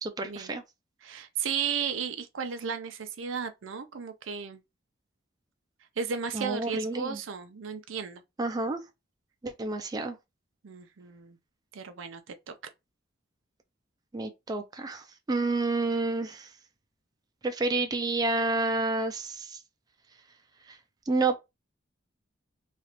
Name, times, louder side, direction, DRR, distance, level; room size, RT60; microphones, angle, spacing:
voice 1, 0.0-0.6 6.3-7.2 8.4-8.8 9.4-10.2 14.1-16.5 17.4-19.6 20.7-20.8 21.1-21.4, right 3 dB, 20° right, 0.4 m, -29 dB
voice 2, 1.0-4.6 6.0-8.2 10.6-11.4 11.7-12.5, right 6 dB, 90° right, 0.5 m, -34 dB
3.1 x 2.4 x 2.9 m
head